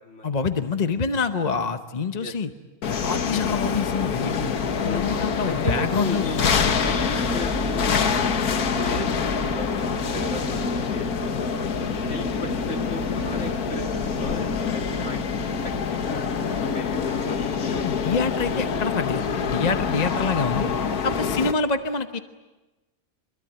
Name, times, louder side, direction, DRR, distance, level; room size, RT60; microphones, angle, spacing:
voice 1, 0.2-2.5 2.8-6.3 17.8-20.7 21.0-22.2, left 4 dB, 35° left, 8 dB, 0.9 m, -26 dB
sound 1, 2.8-21.5, left 6 dB, 90° left, 1.8 m, -26 dB
voice 2, 4.9-8.0 8.4-9.1 9.4-11.5 12.1-16.2 16.5-18.0 20.1-20.2 21.2-21.4, left 1 dB, 50° left, 3 dB, 2.7 m, -37 dB
sound 2, 6.7-16.8, right 1 dB, 10° right, 1.3 m, -34 dB
26.0 x 22.5 x 9.2 m, 1.1 s
omnidirectional pair, 1.5 m